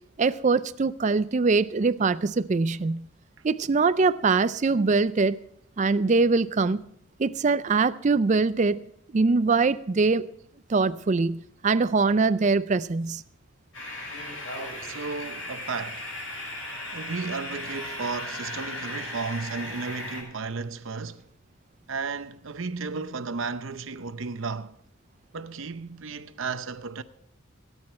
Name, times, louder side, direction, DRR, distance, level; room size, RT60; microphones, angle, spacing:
voice 1, 0.2-3.1 3.4-5.4 5.8-6.8 7.2-8.8 9.1-10.3 10.7-13.2, right 4 dB, 35° right, 0.4 m, -23 dB
sound 1, 13.7-20.2, left 1 dB, 65° left, 6.2 m, -36 dB
voice 2, 14.8-16.1 16.9-21.3 21.9-24.8 25.3-27.0, right 4 dB, 65° right, 0.7 m, -34 dB
18.0 x 9.7 x 4.3 m
head